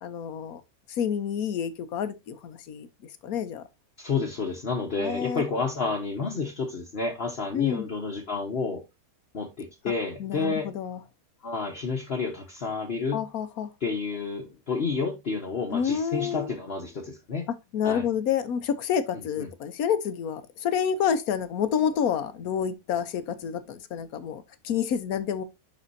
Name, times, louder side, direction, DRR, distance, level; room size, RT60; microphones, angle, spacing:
voice 1, 0.0-0.6 0.9-2.9 3.2-3.6 5.0-5.4 7.5-7.9 10.2-11.0 13.1-13.7 15.7-16.5 17.5-25.4, left 8 dB, 75° left, 1.3 m, -28 dB
voice 2, 4.0-8.8 9.3-10.7 11.4-13.2 13.8-17.5 17.8-18.0 19.4-19.5, left 4 dB, 45° left, 1.3 m, -30 dB
10.5 x 4.2 x 2.7 m
omnidirectional pair, 1.6 m